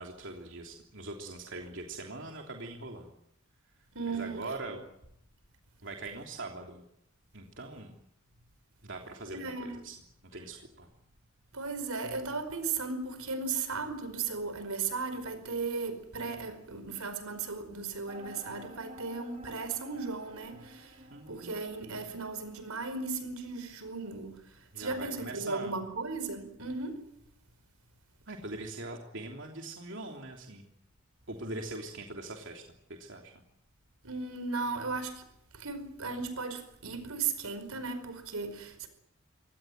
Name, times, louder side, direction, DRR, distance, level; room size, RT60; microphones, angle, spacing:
voice 1, 0.0-3.1 4.1-4.8 5.8-6.8 7.3-7.9 8.8-9.9 10.3-10.9 21.1-21.5 24.7-25.8 28.3-30.7 31.3-32.6 32.9-33.3, right 2 dB, 55° right, 3.3 m, -42 dB
voice 2, 3.9-4.4 9.3-9.8 11.5-27.1 34.0-35.3 35.5-38.9, right 4 dB, 85° right, 5.0 m, -36 dB
sound 1, 18.1-23.6, equal, 30° right, 2.7 m, -52 dB
24.5 x 18.5 x 9.4 m
head